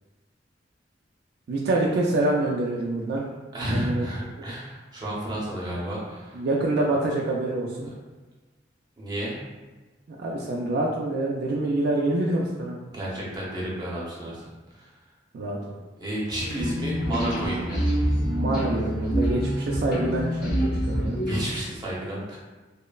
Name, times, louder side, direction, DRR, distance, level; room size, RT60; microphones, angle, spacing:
voice 1, 1.5-3.2 3.7-4.0 6.3-7.9 10.2-12.8 15.3-15.7 18.2-21.2, right 2 dB, 60° right, -3 dB, 0.3 m, -26 dB
voice 2, 3.5-6.5 7.8-7.9 9.0-9.4 12.9-14.9 16.0-17.8 21.3-22.4, right 1 dB, 25° right, -6 dB, 0.6 m, -31 dB
sound 1, 16.6-21.8, equal, 50° left, 0.7 m, -26 dB
3.0 x 2.0 x 2.3 m, 1.2 s
head